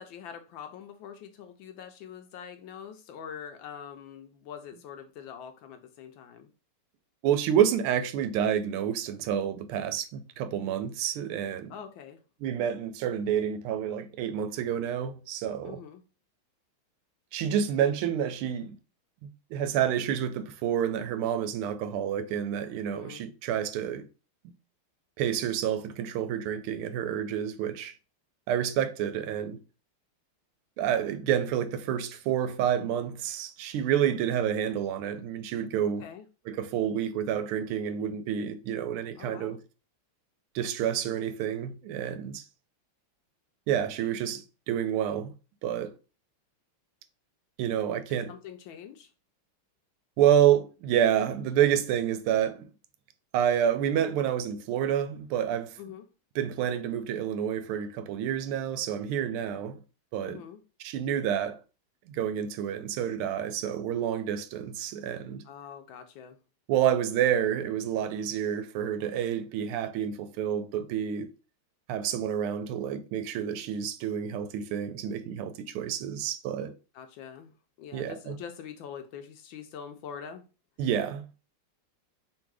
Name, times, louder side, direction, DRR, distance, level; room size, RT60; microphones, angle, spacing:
voice 1, 0.0-6.5 11.7-12.2 15.6-16.0 22.9-23.2 35.8-36.3 39.2-39.6 48.1-49.1 55.8-56.1 60.2-60.6 65.4-66.4 76.9-80.4, left 8 dB, 75° left, 1.2 m, -44 dB
voice 2, 7.2-11.7 12.4-15.8 17.3-18.7 19.2-24.1 25.2-27.9 28.5-29.6 30.8-36.0 36.5-39.6 40.5-42.4 43.7-45.3 45.6-45.9 47.6-48.3 50.2-52.7 53.3-55.8 56.3-59.8 60.1-60.4 60.8-61.6 62.1-65.4 66.7-71.3 71.9-76.7 77.9-78.4 80.8-81.4, right 9 dB, 85° right, 1.5 m, -29 dB
3.6 x 2.6 x 4.6 m
omnidirectional pair, 2.4 m